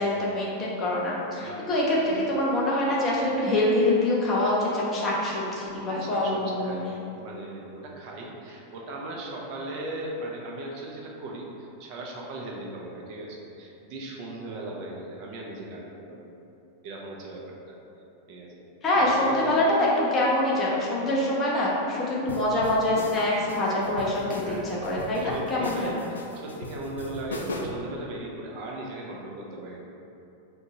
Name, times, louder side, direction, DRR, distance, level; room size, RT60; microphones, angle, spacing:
voice 1, 0.0-6.8 18.8-25.9, left 1 dB, 25° left, -5 dB, 0.9 m, -25 dB
voice 2, 5.9-6.9 7.2-16.4 16.8-17.5 18.3-18.6 18.9-20.4 21.3-21.6 24.4-24.7 25.2-29.8, right 2 dB, 45° right, -2 dB, 0.6 m, -38 dB
sound 1, 22.3-27.9, left 2 dB, 70° left, 0.3 m, -37 dB
3.7 x 2.3 x 3.9 m, 2.8 s
figure-of-eight pair, 90°, 0 cm